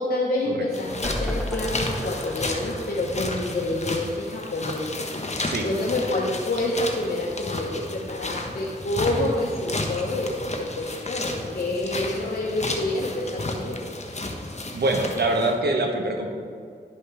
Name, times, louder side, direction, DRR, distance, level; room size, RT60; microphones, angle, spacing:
voice 1, 0.0-13.8, left 2 dB, 65° left, -5 dB, 1.1 m, -28 dB
sound 1, 0.7-15.5, left 2 dB, 40° left, 1.1 m, -32 dB
sound 2, 1.0-4.3 4.6-4.7 5.0-5.1, equal, ahead, 0.8 m, -34 dB
voice 2, 5.4-5.7 9.2-9.3 14.7-16.3, right 2 dB, 75° right, 2 dB, 1.1 m, -24 dB
11.5 x 5.4 x 3.5 m, 2.4 s
cardioid pair, 40°, 17 cm